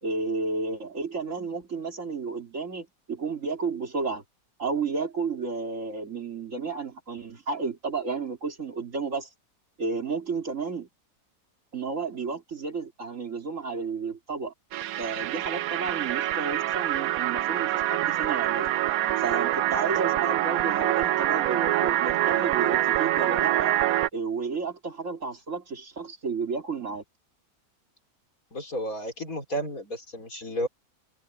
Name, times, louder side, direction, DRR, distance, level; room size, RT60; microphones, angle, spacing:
voice 1, 0.0-4.2 4.6-9.3 9.8-10.9 11.7-14.5 15.0-18.7 19.2-23.7 24.1-27.0, right 4 dB, 55° right, 2.9 m, -32 dB
sound 1, 14.7-24.1, right 13 dB, 75° right, 1.0 m, -25 dB
voice 2, 28.5-30.7, equal, 70° left, 5.2 m, -32 dB
omnidirectional pair, 1.5 m